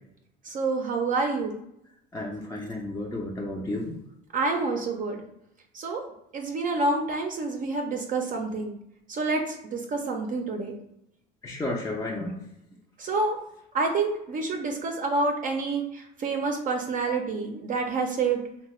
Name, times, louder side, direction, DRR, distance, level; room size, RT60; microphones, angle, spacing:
voice 1, 0.4-1.5 4.3-5.2 5.7-6.0 6.3-8.8 9.1-10.8 13.0-13.4 13.7-18.4, right 3 dB, 40° right, 2 dB, 0.5 m, -28 dB
voice 2, 2.1-3.9 4.4-4.6 11.4-12.3, left 2 dB, 15° left, -2 dB, 0.4 m, -32 dB
2.7 x 2.1 x 3.0 m, 0.81 s
supercardioid pair, 90°, 21 cm